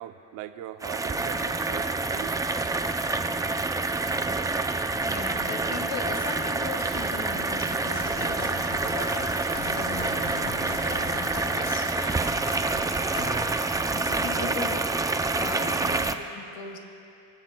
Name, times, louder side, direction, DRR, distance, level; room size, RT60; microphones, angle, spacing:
voice 1, 0.0-2.4 14.4-14.6 15.6-16.2, right 13 dB, 85° right, 10 dB, 0.6 m, -40 dB
sound 1, 0.8-16.1, right 3 dB, 10° right, 0.4 m, -27 dB
voice 2, 5.1-11.9 13.9-14.8 15.4-16.8, left 5 dB, 85° left, 4 dB, 1.6 m, -38 dB
sound 2, 7.9-13.7, left 2 dB, 60° left, 2.7 m, -39 dB
20.5 x 14.5 x 2.3 m, 2.5 s
cardioid pair, 120°, 31 cm